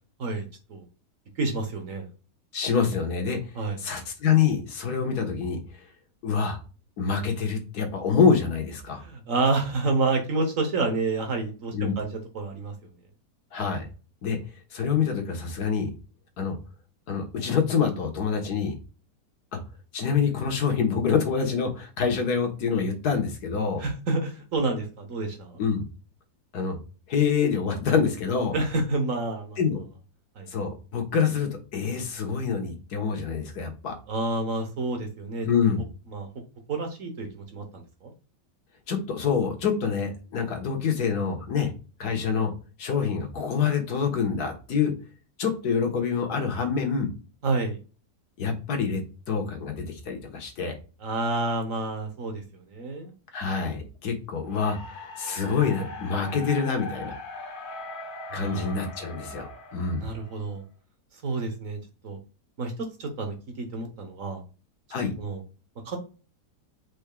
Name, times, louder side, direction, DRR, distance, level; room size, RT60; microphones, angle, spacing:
voice 1, 0.2-0.8 1.4-2.1 3.6-3.8 9.0-12.7 23.8-25.6 28.5-29.6 30.4-30.5 34.1-35.5 36.1-36.3 36.7-38.1 47.4-47.8 51.0-53.1 58.3-58.7 60.0-60.6 61.2-62.2 62.6-62.7 63.0-64.4 65.2-65.4 65.8-66.0, right 3 dB, 55° right, 5 dB, 1.2 m, -29 dB
voice 2, 2.5-3.4 3.8-5.6 6.2-6.6 7.0-9.0 11.7-11.9 13.5-13.8 14.2-14.4 14.7-15.9 16.4-16.5 17.1-18.7 19.5-19.6 19.9-23.8 25.6-25.9 26.5-26.8 27.1-28.5 29.6-29.8 30.5-33.9 35.4-35.8 38.9-41.7 42.0-42.5 42.8-44.9 45.4-47.1 48.4-50.7 53.3-54.8 55.2-57.1 58.3-60.0 64.9-65.1, left 6 dB, 65° left, 4 dB, 1.6 m, -26 dB
sound 1, 54.5-60.6, left 3 dB, 40° left, 0.8 m, -40 dB
5.2 x 4.6 x 2.2 m, 0.34 s
omnidirectional pair, 1.8 m